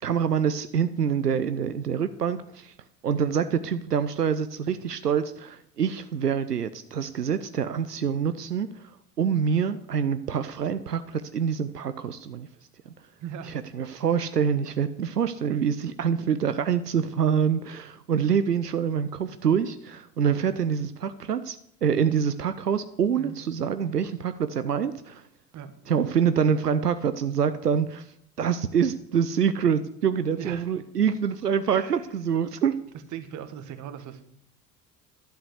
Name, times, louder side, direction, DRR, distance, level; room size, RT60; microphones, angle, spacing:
voice 1, 0.0-2.7 3.0-12.5 12.9-13.0 13.5-25.3 25.9-32.8, right 7 dB, 85° right, 12 dB, 0.6 m, -26 dB
voice 2, 13.2-13.5 23.2-23.4 25.5-25.7 30.4-30.7 31.7-32.0 33.1-34.2, right 8 dB, 40° right, 11 dB, 1.5 m, -38 dB
11.5 x 8.0 x 6.4 m, 0.71 s
figure-of-eight pair, 65°, 46 cm